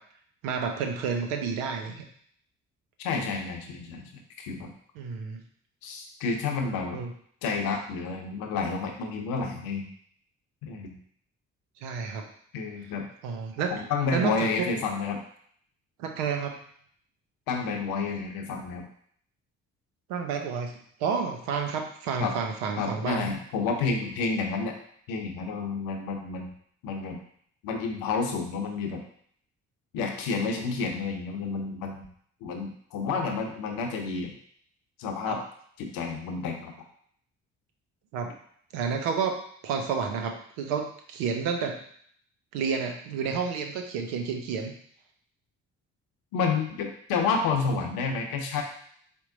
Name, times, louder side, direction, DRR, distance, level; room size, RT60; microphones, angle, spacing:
voice 1, 0.4-2.0 5.0-5.4 6.9-7.1 11.8-12.3 13.2-13.7 14.1-14.7 16.0-16.6 20.1-20.7 21.0-23.3 35.3-35.4 38.1-38.3 38.7-39.4 39.6-41.8 42.5-44.7, right 6 dB, 75° right, 4 dB, 0.7 m, -30 dB
voice 2, 3.0-4.7 5.8-7.0 7.4-9.9 10.6-11.0 12.5-13.1 13.7-15.2 17.5-18.8 22.2-22.3 22.8-24.8 25.1-26.5 26.8-27.2 27.6-29.0 29.9-32.0 32.4-34.3 35.0-35.4 35.8-36.7 46.3-48.6, left 4 dB, 70° left, 3 dB, 0.8 m, -30 dB
4.3 x 2.1 x 3.7 m, 0.62 s
hypercardioid pair, 45°, 36 cm